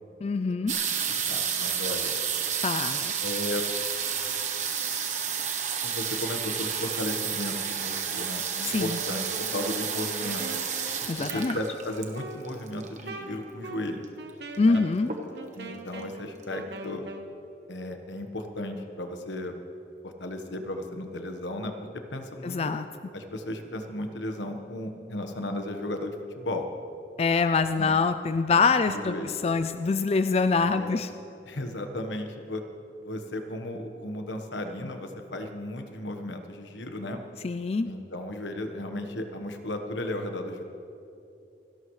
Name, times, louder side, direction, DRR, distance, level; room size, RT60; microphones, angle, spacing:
voice 1, 0.2-0.7 2.6-3.1 8.6-9.0 11.1-11.6 14.6-15.1 22.4-22.8 27.2-31.1 37.4-37.9, left 4 dB, 35° left, 10 dB, 0.3 m, -25 dB
sound 1, 0.7-13.2 14.0-14.1 14.3-14.7 15.0-15.6 16.1-16.2 16.4-16.5, right 7 dB, 40° right, 1.2 m, -31 dB
voice 2, 1.1-2.1 3.2-3.6 5.8-9.3 9.5-10.7 11.2-14.1 14.6-14.8 15.6-17.0 17.7-19.6 20.0-21.7 22.1-22.7 23.1-26.7 27.8-27.9 28.8-29.3 30.7-31.0 31.5-32.6 33.0-37.2 37.8-40.6, left 1 dB, 85° left, 6 dB, 1.3 m, -35 dB
Wind instrument woodwind instrument, 8.7-17.3, right 2 dB, 70° right, 1.1 m, -42 dB
28.0 x 11.5 x 3.2 m, 2.7 s
head